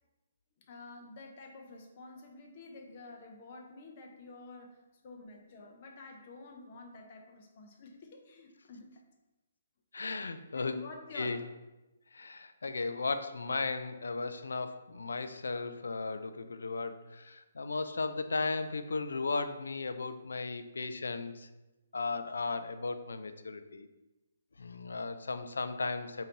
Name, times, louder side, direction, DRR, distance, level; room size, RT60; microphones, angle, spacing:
voice 1, 0.7-4.8 5.0-9.0 10.5-11.4, left 3 dB, 45° left, 2 dB, 0.7 m, -49 dB
voice 2, 9.9-10.8 11.1-11.4 12.1-21.5 21.9-23.9 24.6-26.2, left 3 dB, 80° left, 10 dB, 0.3 m, -36 dB
5.0 x 2.7 x 2.9 m, 1.0 s
hypercardioid pair, 145°, 0 cm